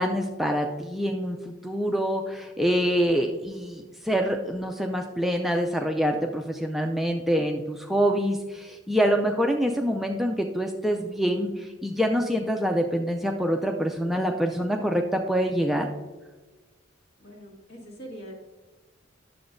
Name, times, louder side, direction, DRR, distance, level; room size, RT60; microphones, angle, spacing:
voice 1, 0.0-15.9, equal, ahead, 2 dB, 0.3 m, -26 dB
voice 2, 17.2-18.3, right 1 dB, 55° left, -1 dB, 1.7 m, -43 dB
10.5 x 6.9 x 2.6 m, 1.3 s
head